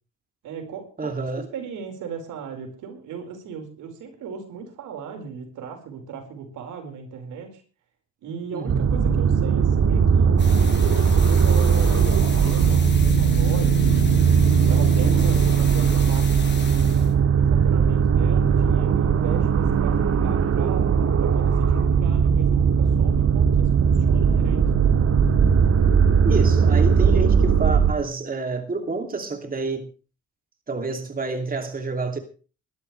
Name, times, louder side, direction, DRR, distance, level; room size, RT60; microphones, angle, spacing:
voice 1, 0.4-1.1 1.5-7.6 8.2-10.4 10.8-14.3 14.7-17.0 17.3-20.9 21.2-24.7, right 6 dB, 85° right, 5.0 m, -37 dB
voice 2, 1.0-1.4 8.5-8.9 15.0-15.2 26.2-29.9 30.7-32.2, right 3 dB, 30° right, 2.7 m, -28 dB
sound 1, 8.7-27.9, right 6 dB, 55° right, 1.9 m, -19 dB
sound 2, 10.4-17.1, left 5 dB, 35° left, 6.3 m, -38 dB
20.5 x 13.5 x 3.3 m
cardioid pair, 90°, 30 cm